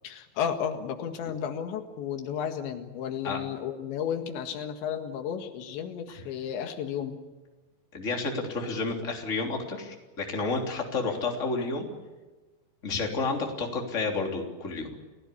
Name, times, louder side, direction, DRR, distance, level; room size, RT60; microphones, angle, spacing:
voice 1, 0.0-7.2, left 8 dB, 85° left, 6 dB, 4.1 m, -33 dB
voice 2, 7.9-11.9 12.8-15.0, left 3 dB, 20° left, 1 dB, 3.2 m, -30 dB
30.0 x 17.5 x 8.5 m, 1.2 s
omnidirectional pair, 5.1 m